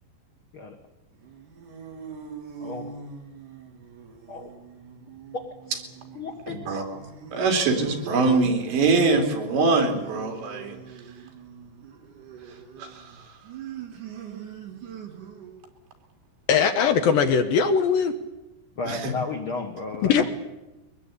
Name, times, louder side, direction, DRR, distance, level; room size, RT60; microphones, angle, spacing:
sound 1, 1.2-15.7, right 6 dB, 50° right, 3.7 m, -42 dB
voice 1, 2.6-2.9 4.3-4.5 5.3-5.4 5.7-5.8 6.1-6.8 18.8-20.3, left 3 dB, 85° left, 4 dB, 1.1 m, -33 dB
voice 2, 6.5-7.0 7.3-10.8 12.5-13.3 18.9-19.1, right 3 dB, 80° right, 4 dB, 5.1 m, -24 dB
voice 3, 16.5-18.1 20.0-20.3, left 6 dB, 65° left, 7 dB, 2.6 m, -20 dB
23.0 x 20.5 x 8.5 m, 1.0 s
omnidirectional pair, 5.0 m